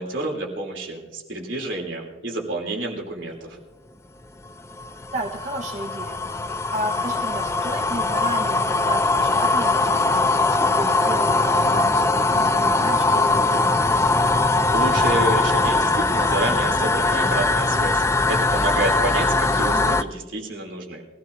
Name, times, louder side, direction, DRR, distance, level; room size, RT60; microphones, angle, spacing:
voice 1, 0.0-3.6 14.7-21.1, right 2 dB, 85° right, 0 dB, 3.2 m, -29 dB
sound 1, 4.4-20.0, left 3 dB, 15° left, 0.4 m, -21 dB
voice 2, 5.1-6.2 6.7-10.2 10.6-14.2 19.7-19.9, right 1 dB, 40° right, -1 dB, 1.3 m, -33 dB
24.0 x 16.5 x 2.7 m, 1.2 s
head